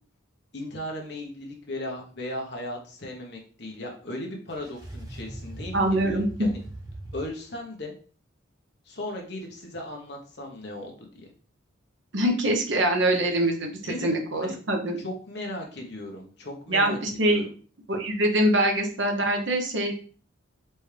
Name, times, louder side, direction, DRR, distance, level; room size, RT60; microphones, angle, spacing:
voice 1, 0.5-6.6 7.1-7.9 8.9-11.3 13.9-14.1 14.4-14.5 15.0-17.0 17.2-17.4, left 1 dB, 55° left, 1 dB, 1.2 m, -36 dB
sound 1, 4.5-7.2, right 1 dB, 20° right, 0.7 m, -40 dB
voice 2, 5.7-6.5 12.1-15.0 16.7-17.5 17.9-19.9, right 1 dB, 65° right, 3 dB, 0.9 m, -24 dB
4.4 x 3.4 x 3.3 m, 0.41 s
head